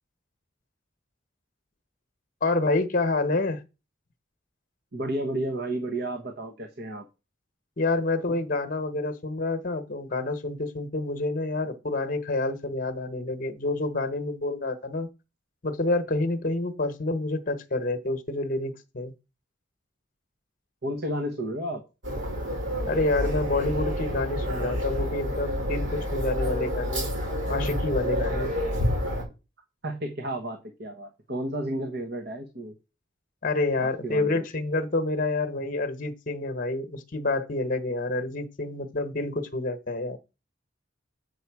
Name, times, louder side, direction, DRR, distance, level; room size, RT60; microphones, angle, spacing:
voice 1, 2.4-3.6 7.8-15.1 15.6-19.1 22.9-27.1 27.5-28.5 33.4-40.2, left 2 dB, 45° left, 1.0 m, -28 dB
voice 2, 4.9-7.1 20.8-21.8 29.8-32.7 33.8-34.5, right 1 dB, 60° right, 1.2 m, -32 dB
sound 1, 22.0-29.2, equal, 80° right, 5.8 m, -28 dB
8.1 x 6.7 x 4.7 m
head